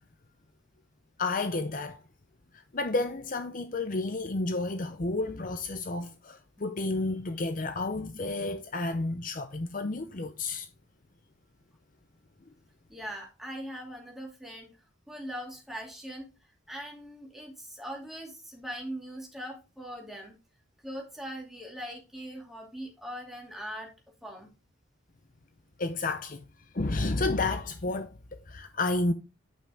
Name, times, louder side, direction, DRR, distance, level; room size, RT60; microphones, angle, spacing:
voice 1, 1.2-2.0 2.7-10.7 25.8-26.4 26.7-28.1 28.5-29.1, left 2 dB, 45° left, 0.7 m, -31 dB
voice 2, 12.9-14.7 15.1-16.3 16.7-20.4 20.8-23.9 24.2-24.5, equal, ahead, 2.6 m, -41 dB
9.9 x 5.8 x 3.5 m
head